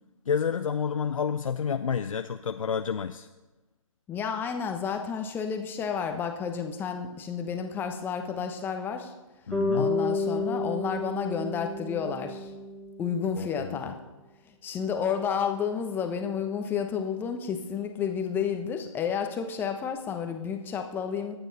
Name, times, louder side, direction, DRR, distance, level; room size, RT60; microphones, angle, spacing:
voice 1, 0.3-3.3 9.5-9.9 13.4-13.9, left 7 dB, 70° left, 9 dB, 0.6 m, -29 dB
voice 2, 4.1-9.1 9.7-12.5 13.0-14.0 14.6-21.3, left 7 dB, 10° left, 6 dB, 1.1 m, -31 dB
Bass guitar, 9.5-13.6, left 2 dB, 5° right, 3.4 m, -31 dB
24.0 x 9.2 x 4.1 m, 1.1 s
figure-of-eight pair, 140°, 18 cm